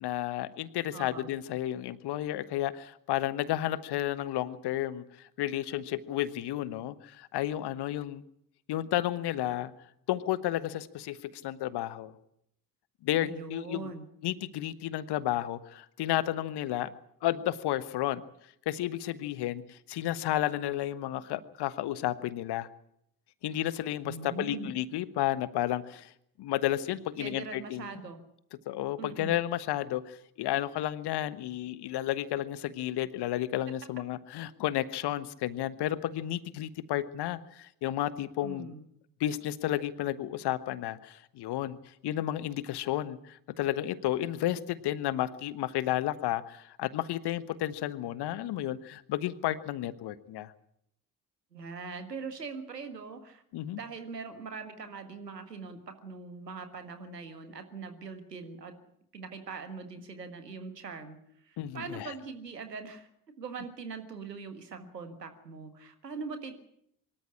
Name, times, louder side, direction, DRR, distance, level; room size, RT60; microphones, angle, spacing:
voice 1, 0.0-8.2 8.7-9.7 10.1-12.1 13.0-13.9 14.2-16.9 17.2-18.2 18.6-22.7 23.4-26.1 26.4-27.9 28.7-38.7 39.2-41.8 42.0-50.5 53.5-53.8 61.6-62.1, left 13 dB, 55° left, 16 dB, 1.3 m, -32 dB
voice 2, 0.9-1.3 13.2-14.0 24.0-24.7 27.2-28.2 29.0-29.4 38.4-38.8 51.5-58.7 59.1-61.2 61.4-63.1 63.4-66.5, right 4 dB, 85° right, 8 dB, 1.8 m, -42 dB
24.0 x 13.5 x 9.9 m, 0.75 s
figure-of-eight pair, 45°, 47 cm